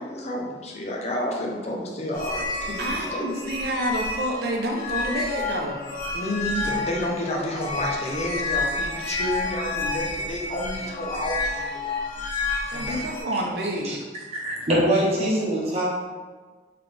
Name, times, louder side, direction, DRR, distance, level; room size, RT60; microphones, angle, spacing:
voice 1, 0.0-3.3 6.1-11.9 12.7-13.1, left 1 dB, 40° left, -1 dB, 0.7 m, -30 dB
sound 1, 2.1-13.2, left 3 dB, 55° left, 1.5 m, -30 dB
voice 2, 2.8-5.8 12.7-13.9, right 1 dB, 60° right, 1 dB, 0.7 m, -28 dB
voice 3, 14.3-15.8, right 1 dB, 35° right, -6 dB, 1.1 m, -23 dB
3.9 x 3.7 x 3.4 m, 1.4 s
head